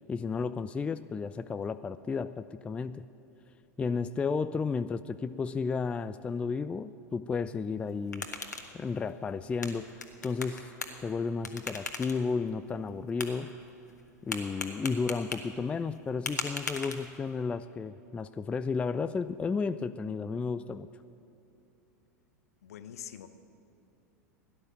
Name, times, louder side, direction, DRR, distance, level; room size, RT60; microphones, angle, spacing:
voice 1, 0.1-3.1 3.8-8.3 8.7-9.9 10.2-10.7 11.0-13.6 14.2-20.9, left 5 dB, 15° left, 12 dB, 0.3 m, -33 dB
sound 1, 7.8-17.4, left 3 dB, 80° left, 1.3 m, -41 dB
voice 2, 22.6-23.3, left 10 dB, 60° left, 11 dB, 0.9 m, -44 dB
16.5 x 11.5 x 7.4 m, 2.9 s
figure-of-eight pair, 85°, 9 cm